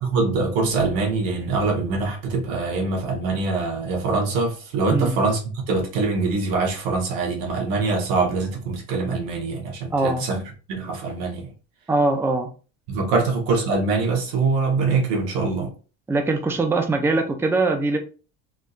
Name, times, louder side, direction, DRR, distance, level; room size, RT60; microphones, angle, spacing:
voice 1, 0.0-5.4 5.7-10.4 10.7-11.5 12.9-15.7, right 3 dB, 80° right, 1.3 m, -23 dB
voice 2, 4.9-5.2 9.9-10.2 11.9-12.5 13.1-13.2 16.1-18.0, right 2 dB, 5° right, 0.4 m, -22 dB
3.6 x 2.6 x 2.4 m
cardioid pair, 115°, 35 cm